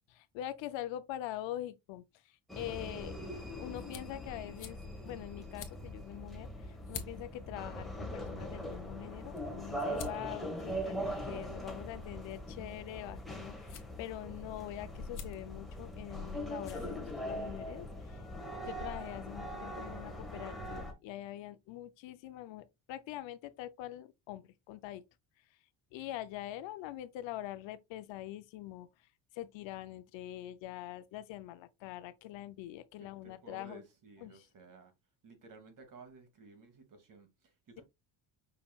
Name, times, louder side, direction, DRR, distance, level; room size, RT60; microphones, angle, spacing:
voice 1, 0.2-3.2 3.5-4.8 5.0-18.2 18.6-25.0 25.9-28.9 29.3-33.8 34.2-34.4, left 13 dB, 65° left, 0.7 m, -44 dB
sound 1, 2.5-20.9, equal, ahead, 1.2 m, -41 dB
sound 2, 3.7-17.6, left 5 dB, 40° left, 1.1 m, -53 dB
voice 2, 33.0-34.9 35.2-37.8, right 3 dB, 40° right, 1.5 m, -55 dB
5.6 x 3.6 x 2.3 m
cardioid pair, 125°, 48 cm